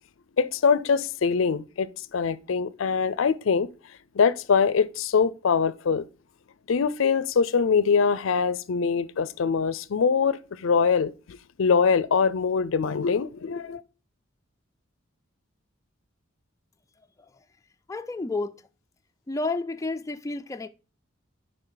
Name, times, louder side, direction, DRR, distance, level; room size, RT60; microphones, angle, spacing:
voice 1, 0.4-3.7 4.1-6.1 6.7-13.8, left 5 dB, 75° left, 0.5 m, -23 dB
voice 2, 17.9-18.7 19.3-20.7, left 3 dB, 15° left, 0.3 m, -31 dB
10.0 x 3.9 x 3.9 m
head